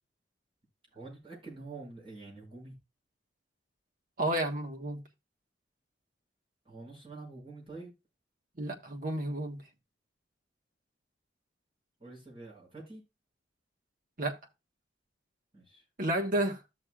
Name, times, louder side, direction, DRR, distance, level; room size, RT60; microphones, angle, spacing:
voice 1, 0.9-2.7 6.6-7.9 12.0-13.0 15.5-15.8, right 3 dB, 30° right, 5.8 m, -47 dB
voice 2, 4.2-5.0 8.6-9.6 14.2-14.4 16.0-16.6, right 1 dB, 45° right, 1.3 m, -31 dB
14.0 x 6.5 x 2.4 m
head